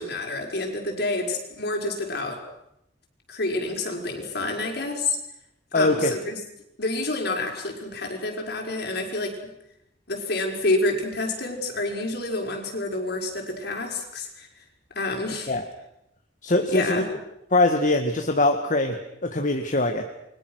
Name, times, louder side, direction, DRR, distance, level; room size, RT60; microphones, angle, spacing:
voice 1, 0.0-2.5 3.3-5.2 5.7-6.4 6.8-9.4 10.1-14.5 14.9-15.5 16.7-17.1, left 2 dB, 65° left, 2 dB, 5.7 m, -28 dB
voice 2, 5.7-6.1 15.5-15.6 16.4-17.0 17.5-20.0, left 2 dB, 45° left, 4 dB, 1.9 m, -22 dB
29.5 x 23.5 x 6.5 m, 0.82 s
head